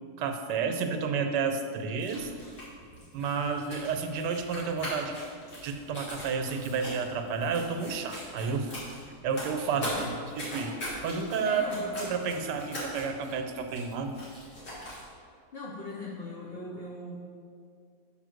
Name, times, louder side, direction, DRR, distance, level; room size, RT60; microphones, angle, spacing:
voice 1, 0.2-2.3 3.1-5.1 5.6-8.7 9.2-10.0 10.4-10.7 11.0-11.6 12.1-14.2, right 5 dB, 80° right, 6 dB, 1.3 m, -31 dB
sound 1, 1.9-15.1, equal, 75° left, 3.0 m, -41 dB
voice 2, 9.7-10.1 11.4-12.0 15.3-17.2, left 2 dB, 50° left, -3 dB, 0.7 m, -39 dB
5.7 x 5.7 x 6.3 m, 2.2 s
omnidirectional pair, 1.8 m